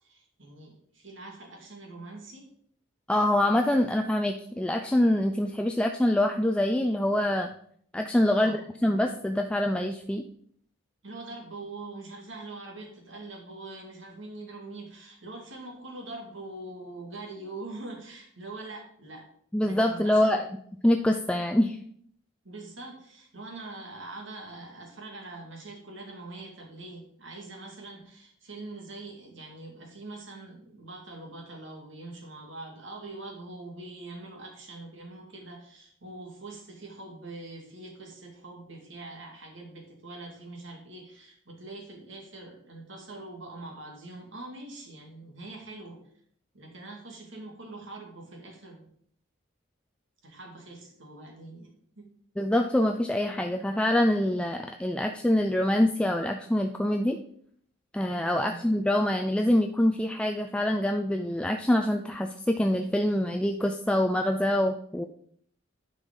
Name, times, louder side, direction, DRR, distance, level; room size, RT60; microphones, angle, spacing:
voice 1, 0.0-2.5 8.3-8.6 11.0-19.3 19.6-20.5 22.4-46.0 46.5-48.9 50.2-52.1 58.3-58.7, right 2 dB, 65° right, 1 dB, 2.3 m, -43 dB
voice 2, 3.1-7.5 7.9-10.2 19.5-20.4 20.8-21.8 52.4-57.2 57.9-65.1, left 1 dB, 5° left, 3 dB, 0.3 m, -25 dB
10.0 x 5.5 x 3.9 m, 0.63 s
head